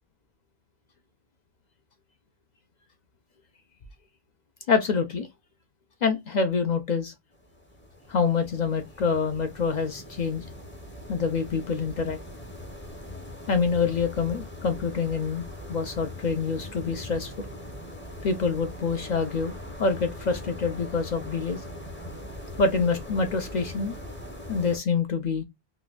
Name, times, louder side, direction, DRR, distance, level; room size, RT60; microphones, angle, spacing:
voice 1, 4.7-5.3 6.0-7.1 8.1-10.4 11.1-12.2 13.5-15.4 15.7-17.5 18.2-19.5 19.8-21.6 22.6-24.0 24.5-25.4, left 5 dB, 55° left, 0.6 m, -26 dB
sound 1, 7.3-24.8, left 1 dB, 15° left, 0.6 m, -41 dB
3.8 x 2.3 x 2.3 m
omnidirectional pair, 1.1 m